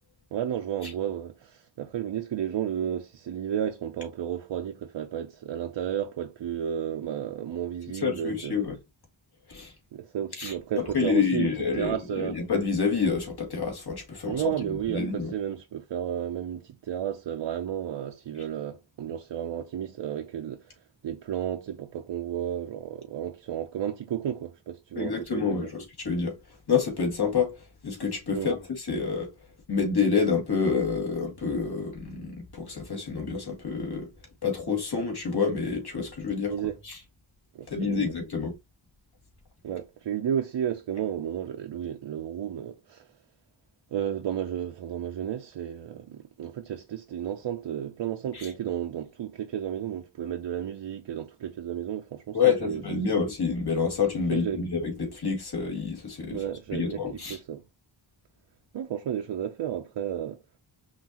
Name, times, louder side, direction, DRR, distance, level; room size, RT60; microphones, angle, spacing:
voice 1, 0.3-8.6 9.9-12.4 14.2-25.7 28.3-28.5 36.4-36.8 37.5-38.2 39.6-43.1 43.9-52.4 52.6-52.8 54.3-54.7 56.2-57.6 58.7-60.4, right 9 dB, 65° right, 0.6 m, -32 dB
voice 2, 7.9-8.7 9.5-9.7 10.4-10.5 10.9-14.5 14.9-15.3 25.0-26.4 26.7-29.3 29.7-34.1 34.4-36.5 36.8-37.0 37.7-38.6 48.3-48.5 52.3-56.4 56.7-57.4, left 5 dB, 50° left, 1.9 m, -28 dB
5.6 x 2.6 x 2.8 m
wide cardioid pair, 120°, 49 cm